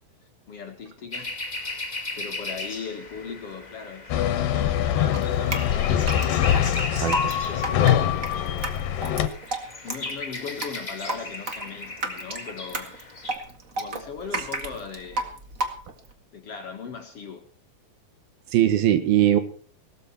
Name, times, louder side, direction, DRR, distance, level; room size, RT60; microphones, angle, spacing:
voice 1, 0.5-1.4 2.2-6.8 7.5-8.8 9.8-12.9 13.8-15.4 16.3-17.5, left 6 dB, 50° left, 2.1 m, -38 dB
sound 1, 1.1-13.4, left 2 dB, 25° left, 0.9 m, -37 dB
sound 2, 4.1-9.3, left 10 dB, 70° left, 2.7 m, -23 dB
Drip, 5.1-16.1, right 2 dB, 35° right, 1.2 m, -32 dB
voice 2, 6.9-7.3 18.5-19.4, right 12 dB, 80° right, 3.3 m, -20 dB
18.0 x 13.0 x 4.4 m
omnidirectional pair, 4.3 m